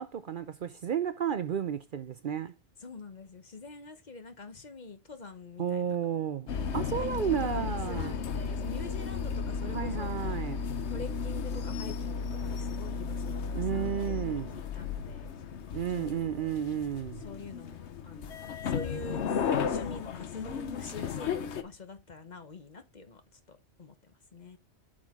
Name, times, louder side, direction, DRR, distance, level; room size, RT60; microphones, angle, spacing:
voice 1, 0.0-2.5 5.6-6.5 6.7-8.2 9.6-10.6 13.5-14.5 15.7-17.3, right 8 dB, 55° right, 0.7 m, -32 dB
voice 2, 2.8-5.9 6.9-10.6 10.9-15.3 15.9-16.6 17.2-18.3 18.6-19.3 19.7-23.2 23.5-24.6, left 3 dB, 40° left, 1.0 m, -45 dB
sound 1, 6.5-21.6, left 6 dB, 75° left, 1.1 m, -34 dB
7.6 x 6.4 x 3.6 m
omnidirectional pair, 1.2 m